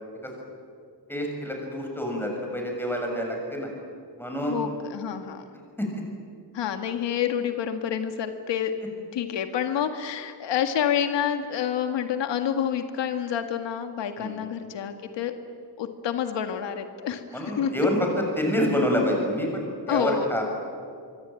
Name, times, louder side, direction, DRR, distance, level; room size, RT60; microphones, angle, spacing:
voice 1, 1.1-3.7 4.2-4.5 5.8-6.0 14.2-14.5 17.3-18.1 18.4-20.4, equal, 5° left, 1 dB, 6.9 m, -27 dB
voice 2, 4.5-5.4 6.5-8.7 9.1-15.3 15.8-17.7 19.9-20.3, left 9 dB, 90° left, 7 dB, 2.0 m, -28 dB
26.0 x 23.5 x 9.2 m, 2.3 s
wide cardioid pair, 145°, 42 cm